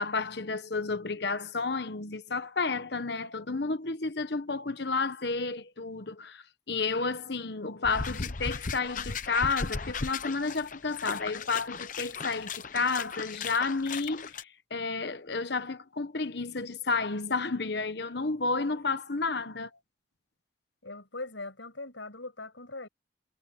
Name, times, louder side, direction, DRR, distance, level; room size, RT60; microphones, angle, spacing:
voice 1, 0.0-19.7, left 4 dB, 60° left, 1.2 m, -31 dB
sound 1, 7.8-14.4, left 5 dB, 45° left, 0.9 m, -36 dB
voice 2, 20.8-22.9, left 2 dB, 85° left, 6.7 m, -41 dB
head